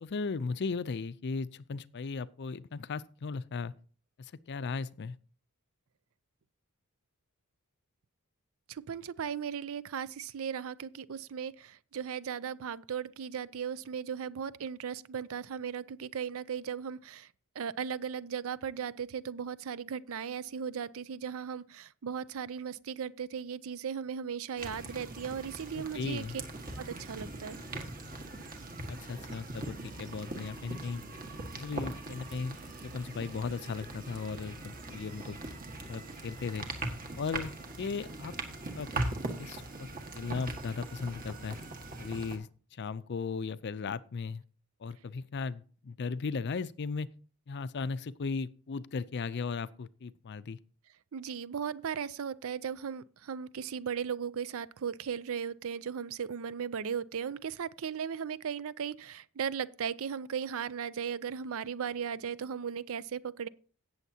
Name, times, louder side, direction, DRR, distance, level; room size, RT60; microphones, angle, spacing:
voice 1, 0.0-3.7 4.2-5.2 25.7-26.4 28.9-31.0 31.5-35.5 35.9-36.7 37.2-37.5 37.8-38.4 38.8-39.1 39.4-39.9 40.1-41.6 42.0-44.4 44.8-47.1 47.5-50.6, left 4 dB, 50° left, 0.5 m, -37 dB
voice 2, 8.7-17.3 17.6-26.2 26.8-27.6 51.1-63.5, right 7 dB, 65° right, 0.5 m, -37 dB
sound 1, 24.6-42.4, right 2 dB, 40° right, 1.6 m, -41 dB
17.5 x 7.2 x 2.8 m
head